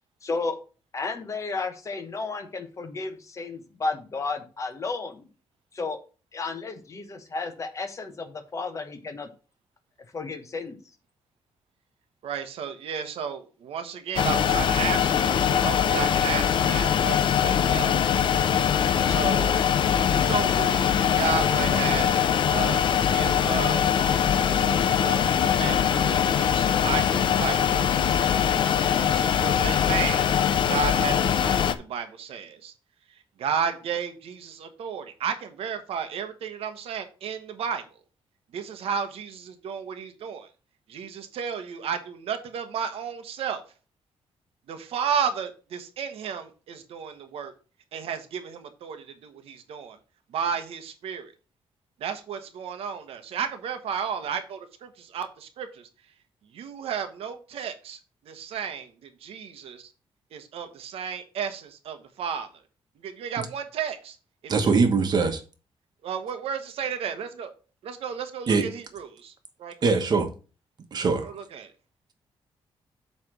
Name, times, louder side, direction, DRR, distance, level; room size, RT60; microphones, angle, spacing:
voice 1, 0.2-0.6 0.9-5.3 5.7-6.0 6.3-9.3 10.1-10.8, left 3 dB, 30° left, 1.1 m, -32 dB
voice 2, 12.2-18.0 19.1-19.6 20.0-23.9 24.5-28.3 28.9-32.7 33.4-37.8 38.5-40.5 40.9-43.6 44.7-47.5 47.9-50.0 50.3-51.3 52.0-55.9 56.5-58.0 58.2-59.9 60.3-62.5 63.0-64.2 64.4-64.8 66.0-67.5 67.8-69.3 69.6-70.0 71.2-71.7, right 7 dB, 85° right, 1.1 m, -33 dB
sound 1, 14.2-31.7, left 8 dB, 55° left, 0.6 m, -22 dB
voice 3, 64.5-65.4 68.5-68.7 69.8-70.3 70.9-71.3, right 4 dB, 45° right, 1.2 m, -22 dB
8.0 x 3.4 x 6.0 m
wide cardioid pair, 150°, 10 cm